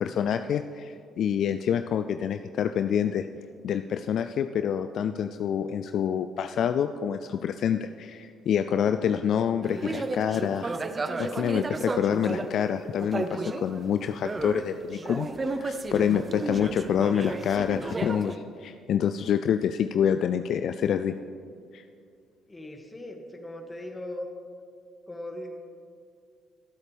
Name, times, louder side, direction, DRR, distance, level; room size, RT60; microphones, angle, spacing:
voice 1, 0.0-3.3 3.6-10.7 11.2-21.2 21.7-21.8, left 8 dB, 60° left, 9 dB, 0.4 m, -27 dB
sound 1, 9.6-12.6 13.0-14.7 14.9-18.4, right 3 dB, 30° right, 0.8 m, -33 dB
voice 2, 22.5-24.3 25.1-25.6, left 1 dB, 20° left, 2 dB, 2.1 m, -39 dB
22.5 x 8.2 x 3.4 m, 2.3 s
hypercardioid pair, 50°, 0 cm